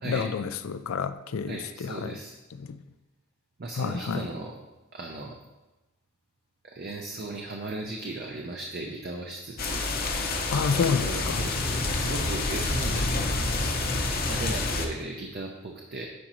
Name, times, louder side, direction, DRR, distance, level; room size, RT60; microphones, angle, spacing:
voice 1, 0.0-2.2 2.6-2.8 3.8-4.3 10.5-11.5, left 5 dB, 80° left, 13 dB, 0.4 m, -29 dB
voice 2, 1.5-2.3 3.6-4.6 4.9-5.4 6.6-9.8 10.7-13.4 14.3-16.1, right 2 dB, 50° right, 1 dB, 0.7 m, -37 dB
sound 1, 9.6-14.9, left 2 dB, 45° left, 0.8 m, -28 dB
9.6 x 5.0 x 3.0 m, 1.0 s
head